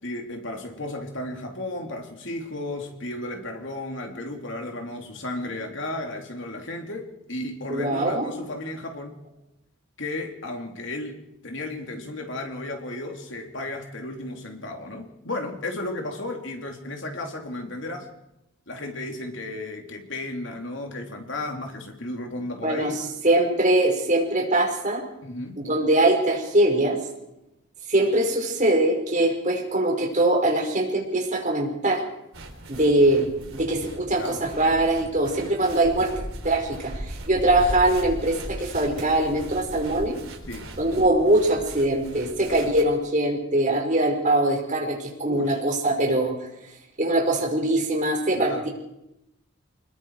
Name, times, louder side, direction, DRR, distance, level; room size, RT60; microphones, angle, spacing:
voice 1, 0.0-9.2 10.0-18.1 18.7-23.0 25.2-25.6 34.2-34.5 40.5-40.7 45.3-45.6 48.3-48.7, left 2 dB, 60° left, 3 dB, 3.0 m, -34 dB
voice 2, 7.7-8.3 22.6-22.9 23.2-25.0 25.6-27.0 27.9-32.0 32.7-36.1 36.4-40.2 40.8-46.3 47.0-48.7, right 1 dB, 35° right, 1 dB, 5.0 m, -22 dB
sound 1, 32.3-42.8, right 1 dB, 75° right, 3.9 m, -38 dB
25.5 x 21.0 x 4.8 m, 0.89 s
head